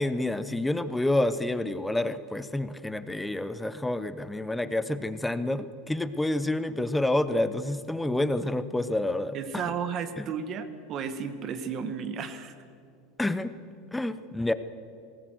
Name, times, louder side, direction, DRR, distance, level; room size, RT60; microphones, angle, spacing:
voice 1, 0.0-9.6 10.2-10.3 13.2-13.6 13.9-14.5, left 1 dB, 5° left, 13 dB, 0.7 m, -28 dB
voice 2, 9.3-12.5, right 6 dB, 30° right, 11 dB, 1.2 m, -33 dB
19.0 x 18.5 x 7.8 m, 2.4 s
supercardioid pair, 165°, 0 cm